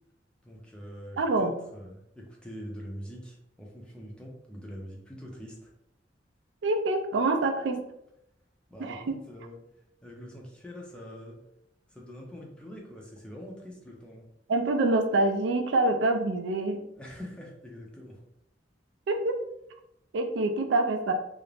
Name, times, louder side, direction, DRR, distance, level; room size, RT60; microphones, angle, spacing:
voice 1, 0.4-5.7 8.7-9.6 10.0-11.4 11.9-14.3 17.0-18.2, equal, 5° left, -2 dB, 0.5 m, -44 dB
voice 2, 1.2-1.5 6.6-7.8 8.8-9.1 14.5-16.8 19.1-19.5 20.1-21.1, right 2 dB, 75° right, 6 dB, 0.3 m, -26 dB
2.4 x 2.0 x 3.1 m, 0.79 s
head